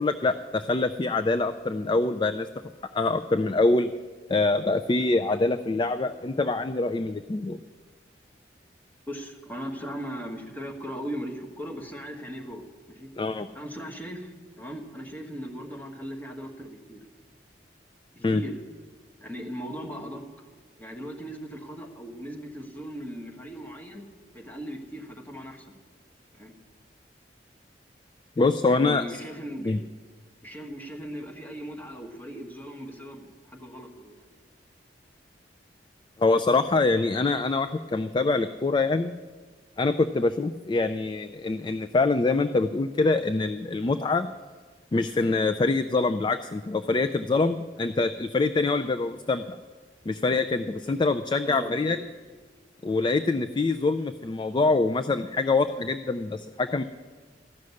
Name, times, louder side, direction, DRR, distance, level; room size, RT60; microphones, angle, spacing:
voice 1, 0.0-2.5 2.9-3.9 4.3-7.6 13.2-13.5 18.2-18.4 28.4-29.0 29.6-29.8 36.2-39.1 39.8-44.3 44.9-49.6 50.1-52.0 52.8-56.8, left 3 dB, 25° left, 10 dB, 0.3 m, -25 dB
voice 2, 9.1-13.1 13.5-17.0 18.1-18.5 19.2-20.2 20.8-24.1 24.3-25.7 26.3-26.5 28.7-29.8 30.4-34.3 50.8-51.0 51.4-52.0, equal, 10° left, 1 dB, 1.4 m, -38 dB
14.0 x 6.4 x 9.5 m, 1.5 s
head